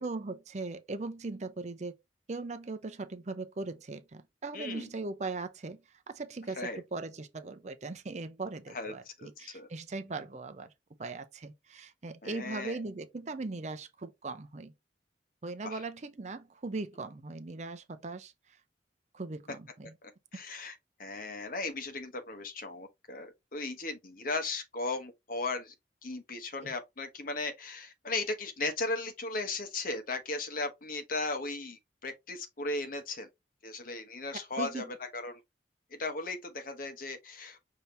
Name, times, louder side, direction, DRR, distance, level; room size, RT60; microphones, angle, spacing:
voice 1, 0.0-1.9 2.3-5.8 6.1-10.7 11.0-14.7 15.4-18.3 19.1-19.9 26.6-26.7 34.6-34.8, right 3 dB, 40° right, 0.5 m, -39 dB
voice 2, 4.5-4.9 6.5-6.8 8.7-9.7 12.2-12.8 15.6-15.8 20.0-25.7 26.0-33.3 33.6-34.8 35.1-35.4 35.9-37.7, left 3 dB, 50° left, 1.0 m, -37 dB
5.6 x 2.8 x 3.2 m
head